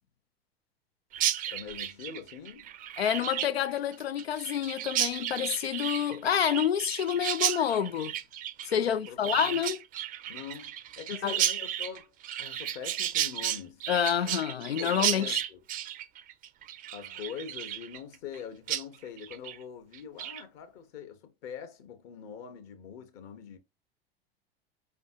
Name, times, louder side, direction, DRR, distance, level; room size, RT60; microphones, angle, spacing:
Chirp tweet, 1.1-18.4 18.7-18.8 19.2-19.6 19.9-20.4, right 11 dB, 25° right, 0.5 m, -33 dB
voice 1, 1.5-2.7 8.8-9.6 10.3-13.9 14.2-14.3 14.6-15.6 16.9-23.6, left 8 dB, 45° left, 1.2 m, -43 dB
voice 2, 3.0-8.2 8.7-9.8 11.2-11.4 13.9-15.4, left 9 dB, 80° left, 0.5 m, -28 dB
5.5 x 3.3 x 2.5 m
figure-of-eight pair, 85°, 30 cm